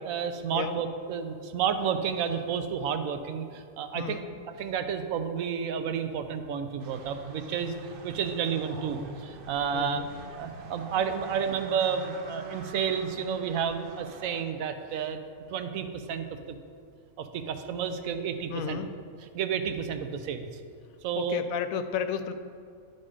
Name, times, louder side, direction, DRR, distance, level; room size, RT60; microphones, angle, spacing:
voice 1, 0.0-4.2 4.6-7.7 8.0-10.0 10.4-15.2 15.5-16.6 17.2-18.8 19.3-20.5 21.0-21.4, right 7 dB, 85° right, 8 dB, 1.0 m, -31 dB
voice 2, 3.9-4.3 9.7-10.1 18.5-18.9 21.1-22.3, left 8 dB, 85° left, 10 dB, 1.0 m, -32 dB
sound 1, 6.8-14.4, right 3 dB, 55° right, 0.7 m, -43 dB
11.0 x 4.3 x 4.9 m, 2.3 s
omnidirectional pair, 1.4 m